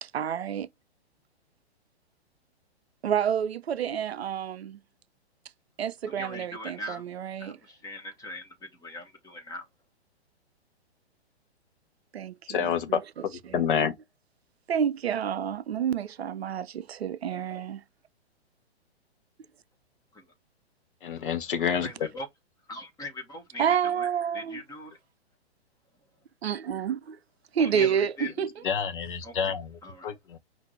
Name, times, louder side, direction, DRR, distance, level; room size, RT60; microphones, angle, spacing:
voice 1, 0.0-0.7 3.0-4.8 5.8-7.6 12.1-13.6 14.7-17.8 21.8-21.9 23.6-24.6 26.4-27.2 27.5-28.6, right 8 dB, 70° right, 0.5 m, -29 dB
voice 2, 6.0-7.0 7.4-9.6 20.1-20.2 21.0-22.3 22.7-24.1 24.3-25.0 27.6-28.3 29.2-29.5 29.8-30.1, left 1 dB, 10° left, 1.2 m, -41 dB
voice 3, 12.5-13.9 21.0-21.9 28.6-29.7 30.0-30.4, left 7 dB, 50° left, 0.9 m, -28 dB
5.7 x 2.6 x 3.2 m
figure-of-eight pair, 120°, 33 cm